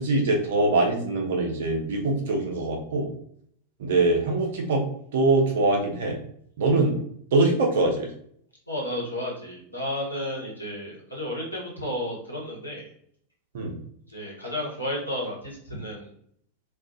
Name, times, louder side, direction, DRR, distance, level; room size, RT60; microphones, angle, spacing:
voice 1, 0.0-3.1 3.8-4.8 5.1-6.2 6.6-7.0 7.3-8.1 13.5-13.8, right 2 dB, 55° right, 1 dB, 0.7 m, -23 dB
voice 2, 8.7-12.9 14.1-16.1, left 1 dB, 85° left, -4 dB, 1.0 m, -32 dB
2.4 x 2.4 x 2.5 m, 0.65 s
figure-of-eight pair, 90°, 0 cm